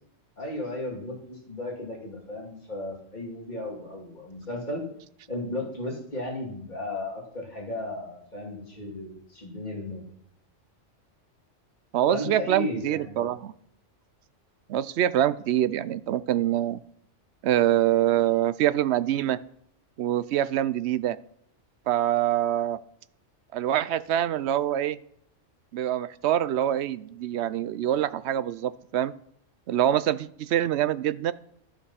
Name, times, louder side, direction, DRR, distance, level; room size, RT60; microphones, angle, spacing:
voice 1, 0.4-4.8 5.3-10.0 12.1-13.3, left 1 dB, 40° left, -1 dB, 2.9 m, -35 dB
voice 2, 11.9-13.5 14.7-16.8 17.4-19.4 20.0-21.2 21.9-22.8 23.5-25.0 25.7-29.1 29.7-31.3, right 12 dB, 70° right, 16 dB, 0.8 m, -25 dB
12.5 x 7.0 x 5.7 m, 0.69 s
omnidirectional pair, 1.3 m